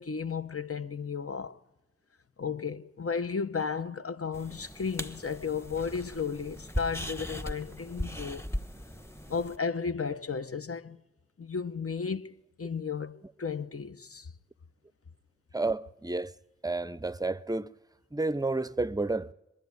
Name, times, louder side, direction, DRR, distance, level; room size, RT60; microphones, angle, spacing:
voice 1, 0.0-1.6 2.4-8.4 9.3-11.0 11.4-14.3, left 5 dB, 50° left, 0.9 m, -34 dB
sound 1, 4.3-9.6, equal, 10° left, 1.2 m, -38 dB
voice 2, 15.5-16.3 16.6-17.7 18.1-19.3, right 2 dB, 15° right, 0.6 m, -30 dB
22.5 x 12.5 x 9.5 m
cardioid pair, 45°, 30 cm